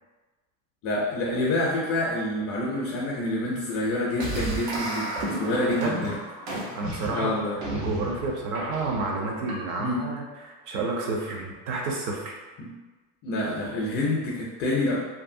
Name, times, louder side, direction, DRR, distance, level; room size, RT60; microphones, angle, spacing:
voice 1, 0.8-6.2 7.1-7.6 9.8-10.1 12.6-12.7 13.2-15.0, left 1 dB, 35° left, -3 dB, 0.4 m, -27 dB
sound 1, 4.2-10.0, right 1 dB, 85° right, 1.0 m, -33 dB
voice 2, 5.7-6.0 6.7-7.3 7.7-10.2 10.7-12.3, right 3 dB, 45° right, 0 dB, 0.6 m, -30 dB
2.6 x 2.6 x 2.5 m, 1.3 s
supercardioid pair, 140°, 41 cm